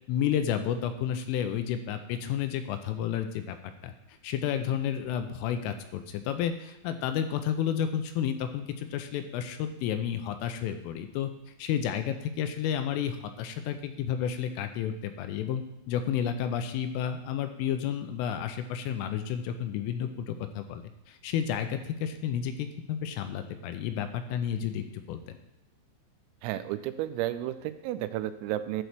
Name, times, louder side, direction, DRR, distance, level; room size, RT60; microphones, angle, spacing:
voice 1, 0.1-3.9 4.2-11.3 11.6-25.4, left 9 dB, 85° left, 8 dB, 3.1 m, -31 dB
voice 2, 26.4-28.8, right 13 dB, 90° right, 11 dB, 3.3 m, -32 dB
11.5 x 4.6 x 6.7 m, 0.88 s
omnidirectional pair, 5.9 m